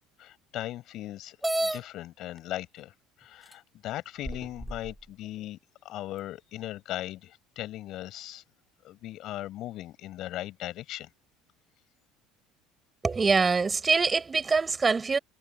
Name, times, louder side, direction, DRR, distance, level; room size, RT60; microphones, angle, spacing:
voice 1, 0.2-8.4 8.8-11.1, left 14 dB, 60° left, 7.1 m, -38 dB
sound 1, 1.4-1.8 2.8-2.9 3.5-3.6 4.2-4.9, right 1 dB, 5° right, 2.7 m, -30 dB
voice 2, 13.0-15.2, right 4 dB, 25° right, 4.8 m, -24 dB
supercardioid pair, 85°, 0 cm